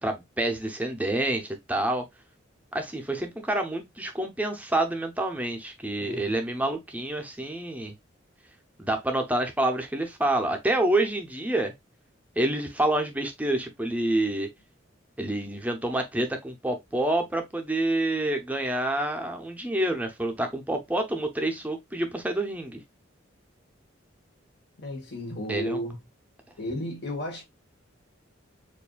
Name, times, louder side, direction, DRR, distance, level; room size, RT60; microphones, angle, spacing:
voice 1, 0.0-2.0 2.7-7.9 8.8-11.7 12.4-14.5 15.2-22.8 25.5-25.8, right 1 dB, 10° right, 0.7 m, -28 dB
voice 2, 24.8-26.0 26.6-27.4, equal, 60° left, 1.4 m, -33 dB
6.9 x 2.6 x 2.3 m
head